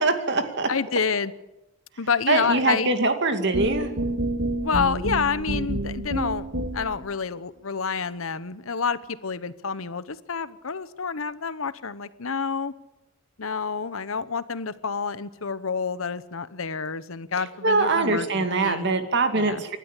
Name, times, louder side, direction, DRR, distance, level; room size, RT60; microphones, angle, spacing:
voice 1, 0.0-0.7 2.3-3.9 17.6-19.8, right 3 dB, 55° right, 7 dB, 2.4 m, -23 dB
voice 2, 0.7-1.3 2.0-2.9 4.6-6.5 6.7-12.7 13.4-18.9 19.3-19.6, left 5 dB, 75° left, 15 dB, 1.0 m, -28 dB
sound 1, 3.5-7.1, right 1 dB, 75° right, 2.3 m, -28 dB
29.5 x 12.0 x 8.3 m, 0.96 s
head